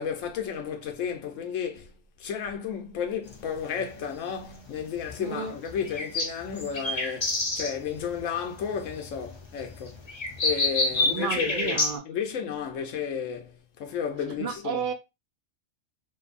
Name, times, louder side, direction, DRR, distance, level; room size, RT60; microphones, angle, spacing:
voice 1, 0.0-1.9 2.2-10.1 10.4-14.8, left 7 dB, 90° left, 1.0 m, -33 dB
sound 1, 3.3-12.0, left 2 dB, 35° left, 0.5 m, -30 dB
voice 2, 5.2-5.5 10.9-12.0 14.4-14.9, right 6 dB, 60° right, 0.5 m, -32 dB
2.6 x 2.6 x 2.4 m
omnidirectional pair, 1.3 m